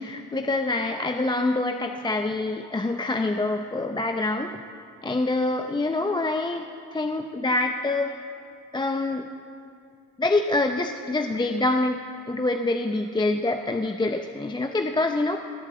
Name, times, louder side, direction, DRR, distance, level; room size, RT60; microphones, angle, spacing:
voice 1, 0.0-4.5 5.0-8.1 8.7-9.3 10.2-12.0 12.3-15.4, left 2 dB, 15° left, 5 dB, 0.6 m, -26 dB
19.0 x 8.1 x 8.0 m, 2.4 s
cardioid pair, 90°, 30 cm